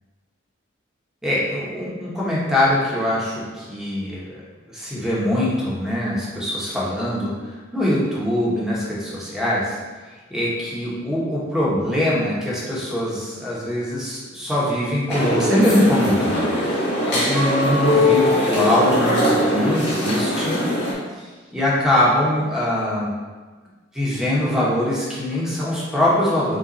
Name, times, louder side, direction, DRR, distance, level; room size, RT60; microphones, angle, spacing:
voice 1, 1.2-4.3 4.7-7.3 7.7-9.8 10.3-20.6 21.5-23.1 23.9-26.6, left 1 dB, ahead, -7 dB, 1.0 m, -22 dB
sound 1, 15.1-20.9, left 1 dB, 60° left, 1.4 m, -21 dB
5.1 x 2.5 x 4.0 m, 1.3 s
head